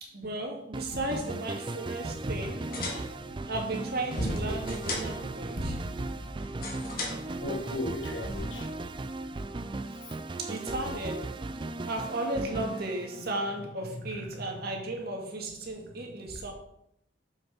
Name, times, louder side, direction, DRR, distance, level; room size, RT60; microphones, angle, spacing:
voice 1, 0.0-2.7 3.4-5.8 10.4-11.3 11.9-16.5, right 2 dB, 60° right, 1 dB, 2.1 m, -35 dB
sound 1, 0.7-13.7, right 2 dB, 25° right, 0.4 m, -37 dB
sound 2, 2.5-8.4, left 1 dB, 55° left, 2.2 m, -38 dB
sound 3, 5.5-9.5, equal, 45° right, 1.6 m, -43 dB
voice 2, 5.8-6.3 7.0-8.7 9.8-9.9 12.1-12.8 13.1-13.3 13.8-14.7, left 1 dB, 80° left, 0 dB, 1.4 m, -39 dB
7.3 x 6.5 x 5.8 m, 0.77 s
head